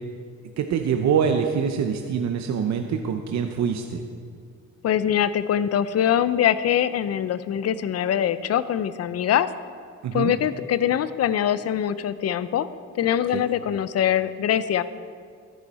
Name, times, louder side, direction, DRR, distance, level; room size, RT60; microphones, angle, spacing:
voice 1, 0.6-4.0 10.0-10.3 13.3-13.4, right 7 dB, 65° right, 5 dB, 0.8 m, -24 dB
voice 2, 4.8-9.5 10.1-12.7 12.9-14.8, left 10 dB, 55° left, 14 dB, 0.6 m, -23 dB
14.0 x 10.5 x 4.2 m, 2.1 s
cardioid pair, 90°, 30 cm